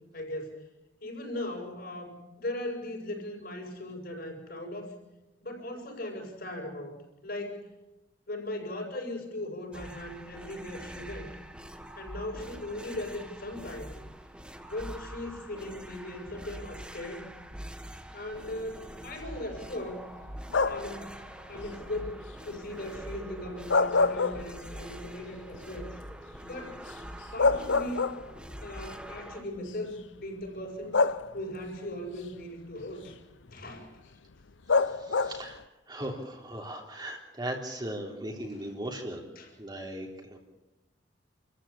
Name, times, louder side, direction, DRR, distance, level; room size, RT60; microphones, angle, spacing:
voice 1, 0.1-0.6 1.0-4.9 5.4-6.9 7.2-7.7 8.3-11.3 12.0-13.9 14.7-17.3 18.1-20.1 20.7-21.1 21.5-25.9 26.4-26.8 27.3-28.2 28.6-31.0 31.3-33.2 33.5-33.9 39.4-39.5, left 1 dB, 55° left, 2 dB, 7.5 m, -38 dB
sound 1, 9.7-29.4, right 1 dB, 5° right, 1.6 m, -44 dB
sound 2, 20.5-21.0 23.5-24.9 25.3-25.4 26.9-27.0 27.4-28.5 29.6-29.7 30.9-31.7 34.7-35.6, left 4 dB, 90° left, 0.8 m, -26 dB
voice 2, 34.7-39.2 39.6-40.4, right 1 dB, 25° right, 0 dB, 3.5 m, -38 dB
29.0 x 14.5 x 8.7 m, 1.0 s
head